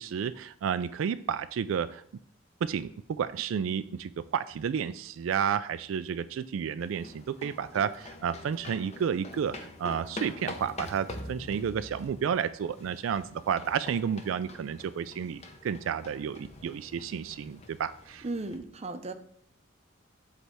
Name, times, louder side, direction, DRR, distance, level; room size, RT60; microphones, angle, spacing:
voice 1, 0.0-2.0 2.6-18.3, right 7 dB, 80° right, 12 dB, 0.3 m, -31 dB
sound 1, 6.8-18.6, left 2 dB, 35° left, 0.8 m, -45 dB
voice 2, 18.2-19.1, right 2 dB, 30° right, 8 dB, 0.6 m, -35 dB
8.0 x 3.3 x 6.1 m, 0.63 s
head